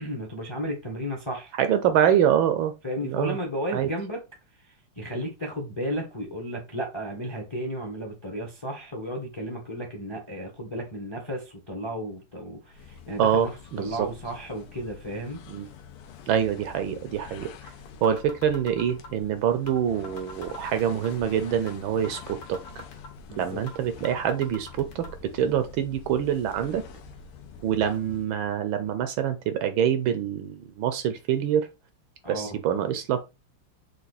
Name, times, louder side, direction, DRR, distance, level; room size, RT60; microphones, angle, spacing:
voice 1, 0.0-1.5 2.8-4.2 4.6-13.5 13.8-15.4 23.3-23.6 32.2-32.6, equal, 25° left, 0.7 m, -33 dB
voice 2, 1.6-2.7 3.0-3.4 3.7-3.9 13.2-14.1 15.5-15.7 16.3-17.7 18.0-22.6 23.4-26.8 27.6-31.7 32.3-33.2, right 9 dB, 75° right, 1.3 m, -25 dB
sound 1, 12.6-28.5, left 6 dB, 90° left, 1.6 m, -46 dB
sound 2, 17.7-17.8 18.0-19.2 19.7-19.8 20.0-21.2 21.7-21.8 22.0-23.2 23.7-23.8 24.0-25.1, left 2 dB, 65° left, 1.9 m, -42 dB
5.0 x 2.4 x 4.0 m
omnidirectional pair, 2.4 m